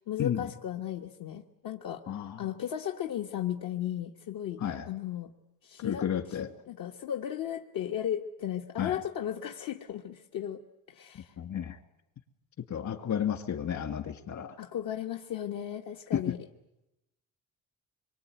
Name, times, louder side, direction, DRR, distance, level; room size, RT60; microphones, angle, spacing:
voice 1, 0.0-2.0 2.4-5.3 5.6-6.1 6.7-10.6 10.9-11.3 14.6-16.4, left 10 dB, 70° left, 3 dB, 1.5 m, -35 dB
voice 2, 2.1-2.5 4.6-4.9 5.8-6.5 8.8-9.0 11.4-11.8 12.7-14.6 16.1-16.3, left 9 dB, 55° left, 8 dB, 2.6 m, -32 dB
25.5 x 23.5 x 9.3 m, 0.91 s
cardioid pair, 140°, 35 cm